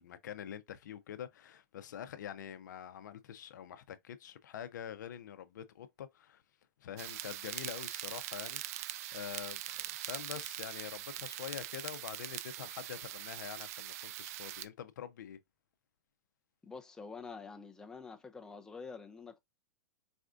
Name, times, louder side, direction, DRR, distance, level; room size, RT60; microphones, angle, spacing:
voice 1, 0.0-6.4 6.8-8.6 9.1-15.4, left 9 dB, 80° left, 0.5 m, -45 dB
sound 1, 7.0-14.6, right 13 dB, 55° right, 0.4 m, -42 dB
voice 2, 16.6-19.4, left 4 dB, 5° left, 0.4 m, -47 dB
4.2 x 2.4 x 2.4 m
hypercardioid pair, 130°, 10 cm